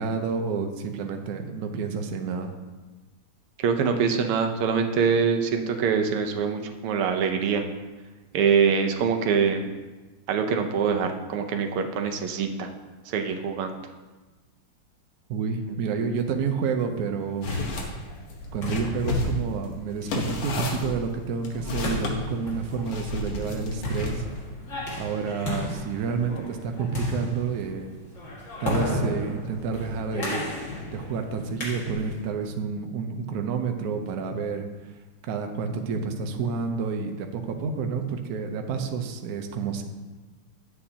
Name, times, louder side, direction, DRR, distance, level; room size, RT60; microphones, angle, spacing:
voice 1, 0.0-2.5 15.3-17.5 18.5-24.2 25.0-27.9 28.6-30.5 30.9-34.6 35.2-39.8, right 5 dB, 65° right, 5 dB, 0.9 m, -29 dB
voice 2, 3.6-7.6 8.3-9.6 10.3-12.7 13.1-13.8, right 6 dB, 90° right, 5 dB, 1.7 m, -24 dB
sound 1, 17.1-32.3, left 1 dB, 35° left, 2.2 m, -34 dB
sound 2, 17.4-17.9 18.3-22.2 22.9-24.4, left 3 dB, 80° left, 2.0 m, -31 dB
10.0 x 7.9 x 2.8 m, 1.2 s
omnidirectional pair, 2.4 m